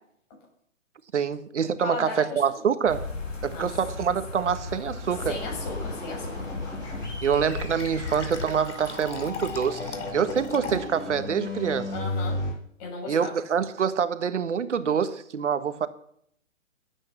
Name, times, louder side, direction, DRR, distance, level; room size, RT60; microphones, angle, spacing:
voice 1, 1.1-3.1 3.4-5.3 7.2-11.9 13.1-15.9, right 7 dB, 70° right, 12 dB, 1.5 m, -26 dB
voice 2, 1.8-2.4 3.5-3.7 5.3-6.5 11.9-12.4 12.8-13.4, left 3 dB, 30° left, 1 dB, 7.3 m, -35 dB
sound 1, 2.9-8.5, left 3 dB, 90° left, 3.7 m, -36 dB
sound 2, 5.1-12.5, left 2 dB, 10° left, 7.4 m, -36 dB
Fill (with liquid), 7.1-11.1, left 4 dB, 65° left, 2.6 m, -39 dB
22.5 x 8.9 x 5.7 m, 0.67 s
hypercardioid pair, 145°, 37 cm